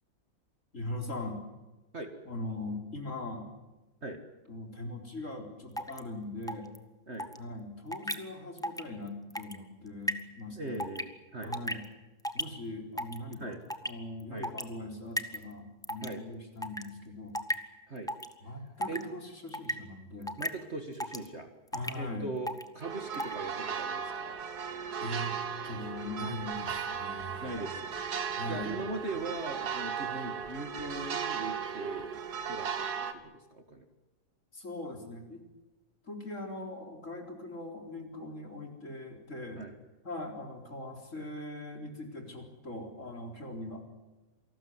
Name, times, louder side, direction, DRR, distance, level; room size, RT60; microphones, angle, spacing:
voice 1, 0.7-1.4 2.2-3.5 4.5-6.7 7.4-10.8 11.4-11.8 12.3-13.6 13.8-17.4 18.4-20.4 21.7-22.3 25.0-25.4 25.6-27.7 28.4-28.8 34.5-35.4 36.0-39.7 40.0-43.8, left 2 dB, 40° left, 3 dB, 4.4 m, -41 dB
sound 1, 5.8-6.0 6.5-6.8 7.2-7.4 7.9-8.1 8.6-8.8 9.1-9.6 10.1-10.2 10.8-11.0 11.4-11.9 12.2-12.4 13.0-13.3 13.7-13.9 14.4-14.6 15.2-15.4 15.8-16.1 16.6-16.8 17.3-17.5 18.1-18.3 18.8-19.0 19.5-19.7 20.3-20.5 21.0-21.3 21.7-21.9 22.5-22.6 23.1-23.3, equal, ahead, 1.2 m, -33 dB
voice 2, 10.5-11.5 13.4-13.6 14.3-14.5 16.0-16.2 17.9-18.1 18.9-19.0 20.4-21.5 21.9-24.3 27.4-28.0 28.5-32.1 32.5-32.9 33.1-33.9 39.6-39.7, right 2 dB, 35° right, 6 dB, 2.1 m, -40 dB
sound 2, 22.8-33.1, right 7 dB, 55° right, 1.9 m, -36 dB
28.0 x 19.5 x 8.0 m, 1.1 s
omnidirectional pair, 2.1 m